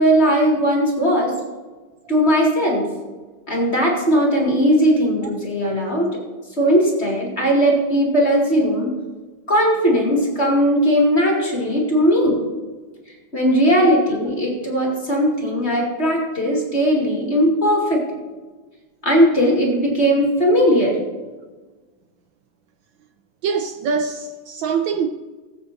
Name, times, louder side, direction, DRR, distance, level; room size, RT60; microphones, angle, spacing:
voice 1, 0.0-1.3 2.1-2.8 3.5-6.2 6.6-8.9 9.5-12.4 13.3-18.0 19.0-21.0, equal, 30° left, 2.4 m, -18 dB
voice 2, 23.4-25.1, right 6 dB, 75° right, 1.3 m, -23 dB
20.5 x 8.0 x 2.6 m
omnidirectional pair, 2.2 m